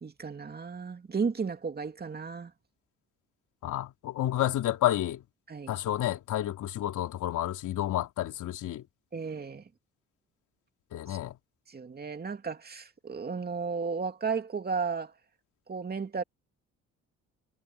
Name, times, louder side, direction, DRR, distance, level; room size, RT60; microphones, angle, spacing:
voice 1, 0.0-2.5 5.5-5.7 9.1-9.7 11.1-11.2 11.7-15.1 15.7-16.2, right 5 dB, 30° right, 2.4 m, -34 dB
voice 2, 3.6-5.2 5.7-8.8 10.9-11.3, left 13 dB, 80° left, 3.3 m, -30 dB
cardioid pair, 90°, 30 cm